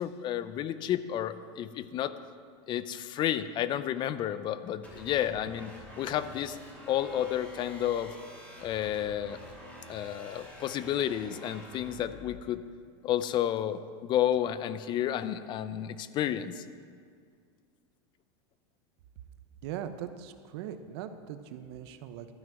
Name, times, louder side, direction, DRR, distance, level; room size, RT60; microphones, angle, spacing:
voice 1, 0.0-2.1 2.7-6.6 6.9-8.2 8.6-9.4 9.9-12.6 13.0-16.6, left 11 dB, 30° left, 14 dB, 0.5 m, -31 dB
sound 1, 4.8-12.4, equal, 10° left, 3.2 m, -48 dB
voice 2, 19.6-22.3, right 10 dB, 65° right, 9 dB, 0.9 m, -40 dB
12.5 x 6.0 x 9.0 m, 2.2 s
supercardioid pair, 145°, 15 cm